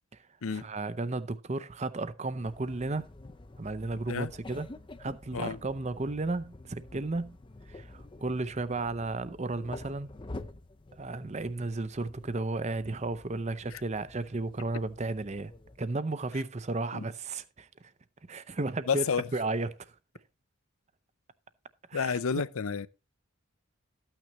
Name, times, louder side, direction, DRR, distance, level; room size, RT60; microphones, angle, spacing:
voice 1, 0.1-3.1 3.6-4.7 5.0-7.4 7.7-10.1 10.9-15.5 15.8-17.9 18.3-20.0 21.9-22.2, right 2 dB, 30° right, 0.6 m, -34 dB
sound 1, 2.4-15.8, left 2 dB, 20° left, 0.5 m, -49 dB
voice 2, 18.9-19.2 21.9-22.9, left 6 dB, 70° left, 0.5 m, -30 dB
13.5 x 8.9 x 3.0 m
head